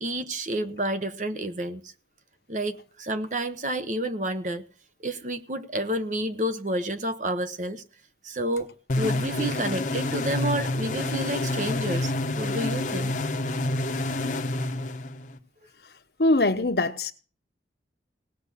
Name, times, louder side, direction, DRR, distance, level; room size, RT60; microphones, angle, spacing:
voice 1, 0.0-1.9 2.5-4.6 5.0-7.8 8.2-8.7 9.0-13.1, right 1 dB, 45° right, 1.0 m, -30 dB
sound 1, 8.9-15.4, left 2 dB, 45° left, 1.0 m, -28 dB
voice 2, 16.2-17.1, left 2 dB, 60° left, 1.1 m, -22 dB
18.0 x 6.1 x 8.5 m
head